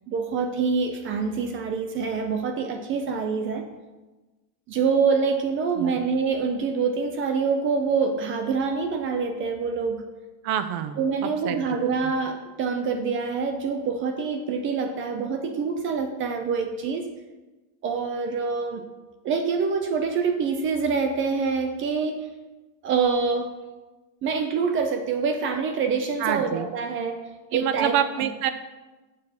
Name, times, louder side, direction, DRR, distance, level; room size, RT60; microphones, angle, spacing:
voice 1, 0.1-3.6 4.7-10.0 11.0-17.1 17.8-18.8 19.2-22.3 22.8-23.5 24.2-27.2 27.5-28.3, right 5 dB, 25° right, 6 dB, 0.4 m, -26 dB
voice 2, 10.4-11.8 12.0-12.1 26.2-26.7 27.5-28.5, right 9 dB, 55° right, 11 dB, 0.8 m, -27 dB
7.4 x 5.9 x 4.9 m, 1.2 s
supercardioid pair, 150°, 49 cm